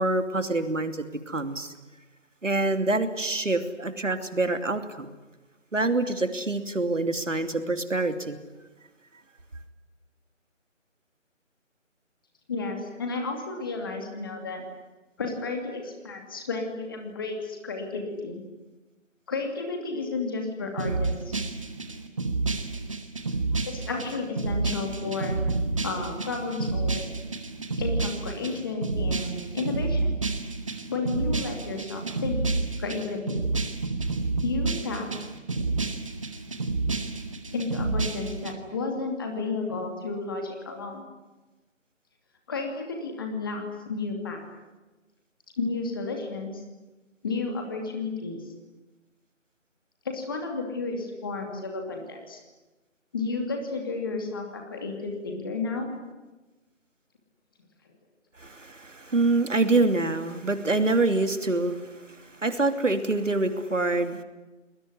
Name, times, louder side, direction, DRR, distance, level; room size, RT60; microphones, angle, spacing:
voice 1, 0.0-1.7 2.4-5.1 5.7-8.4 58.4-64.2, right 2 dB, 70° right, 8 dB, 2.9 m, -26 dB
voice 2, 12.5-14.6 15.2-18.4 19.3-21.4 23.7-25.4 25.8-27.1 27.8-30.1 30.9-32.4 32.8-33.4 34.4-35.1 35.6-35.7 37.5-41.1 42.5-44.4 45.6-46.6 47.2-48.4 50.0-52.4 53.1-55.9, left 3 dB, 15° left, 3 dB, 2.6 m, -32 dB
sound 1, 20.8-38.5, right 3 dB, 25° right, 1.7 m, -30 dB
29.0 x 20.5 x 9.9 m, 1.1 s
figure-of-eight pair, 165°, 39 cm